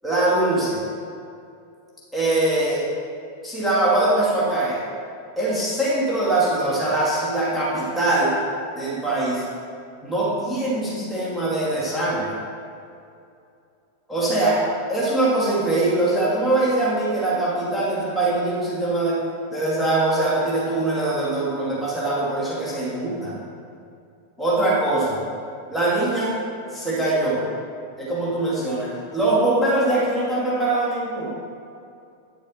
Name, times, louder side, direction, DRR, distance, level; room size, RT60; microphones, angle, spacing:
voice 1, 0.0-0.8 2.1-2.8 3.4-4.8 5.4-8.4 8.8-9.4 10.0-12.3 14.1-14.6 14.9-19.2 19.5-23.3 24.4-25.2 25.7-26.3 26.7-27.4 28.0-31.3, right 2 dB, 5° left, -8 dB, 2.4 m, -22 dB
10.5 x 6.5 x 4.2 m, 2.5 s
figure-of-eight pair, 90°, 0 cm